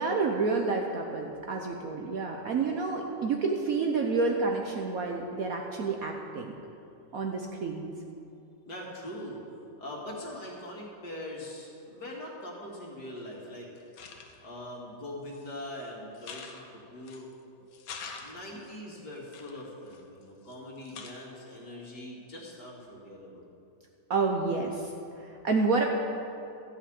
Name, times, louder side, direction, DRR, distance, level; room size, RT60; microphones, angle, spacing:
voice 1, 0.0-6.5 7.1-7.9 24.1-25.9, right 4 dB, 60° right, 2 dB, 1.1 m, -29 dB
voice 2, 8.7-9.4 9.8-13.7 14.4-17.3 18.2-23.4, left 1 dB, 55° left, -3 dB, 2.7 m, -42 dB
sound 1, 13.2-13.3 13.8-14.5 15.2-15.7 16.1-17.3 17.7-18.7 19.3-20.5 20.8-21.4, left 5 dB, 90° left, 1.8 m, -46 dB
14.0 x 5.9 x 8.7 m, 2.6 s
omnidirectional pair, 2.1 m